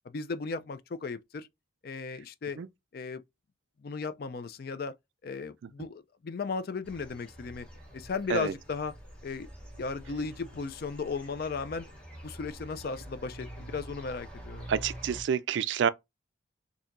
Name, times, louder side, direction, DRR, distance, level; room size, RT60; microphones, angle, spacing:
voice 1, 0.1-1.5 1.8-2.6 2.9-3.2 3.8-4.9 5.2-7.7 7.9-8.9 9.2-9.5 9.8-11.9 12.2-14.7, left 4 dB, 50° left, 0.4 m, -36 dB
sound 1, 6.8-15.2, equal, 5° left, 0.9 m, -46 dB
voice 2, 14.7-15.9, right 7 dB, 70° right, 0.3 m, -28 dB
4.4 x 2.7 x 2.5 m
head